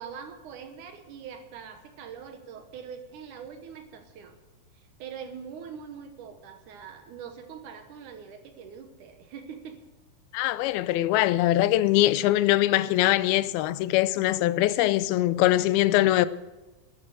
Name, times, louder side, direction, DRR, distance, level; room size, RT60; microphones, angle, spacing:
voice 1, 0.0-4.4 4.8-9.8 11.4-11.5 12.7-13.0, right 7 dB, 65° right, 2.3 m, -43 dB
voice 2, 10.3-16.3, left 15 dB, 90° left, 2.5 m, -22 dB
12.0 x 11.0 x 7.8 m
omnidirectional pair, 4.3 m